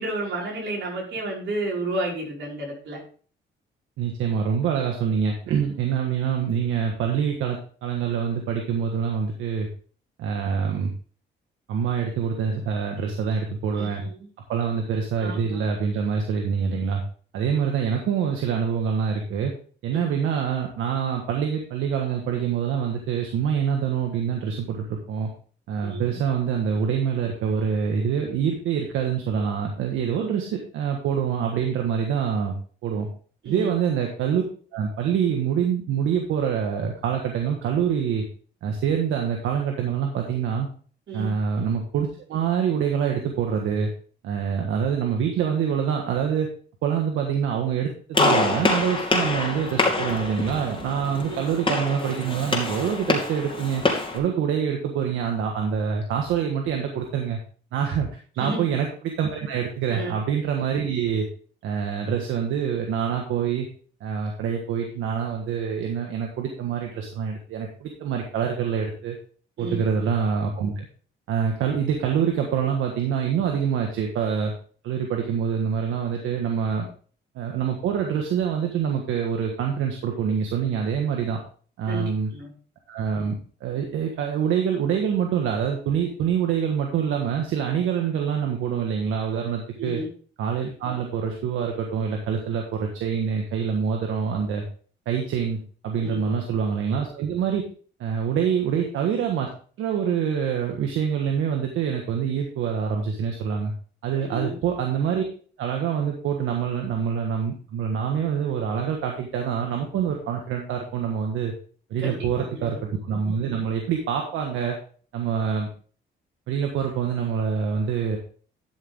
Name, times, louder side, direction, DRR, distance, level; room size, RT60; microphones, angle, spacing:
voice 1, 0.0-3.0 13.8-14.2 15.2-15.6 17.6-17.7 19.9-20.1 25.8-26.2 33.4-33.7 41.1-41.3 51.2-51.6 58.4-58.6 59.9-60.1 69.6-69.8 76.8-76.9 81.9-82.5 89.8-90.1 96.0-96.4 104.2-104.6 112.0-112.7, right 2 dB, 65° right, -3 dB, 5.4 m, -32 dB
voice 2, 4.0-9.7 10.2-10.9 11.7-14.0 14.5-17.0 17.3-19.5 19.8-25.3 25.7-32.5 32.8-33.1 33.4-34.4 34.7-38.2 38.6-40.7 41.1-43.9 44.2-46.5 46.8-53.8 54.1-57.4 57.7-58.1 58.4-58.9 59.2-61.3 61.6-63.7 64.0-69.2 69.6-70.9 71.3-74.5 74.8-76.8 77.3-81.4 81.8-82.3 82.9-90.0 90.4-94.6 95.0-97.6 98.0-99.5 99.8-103.7 104.0-105.2 105.6-111.5 111.9-112.8 113.0-114.8 115.1-115.7 116.5-118.2, right 7 dB, 85° right, 2 dB, 1.6 m, -25 dB
Gunshot gunfire, 48.1-54.2, left 2 dB, 25° left, 2.7 m, -25 dB
12.0 x 6.7 x 3.7 m, 0.42 s
cardioid pair, 90°, 20 cm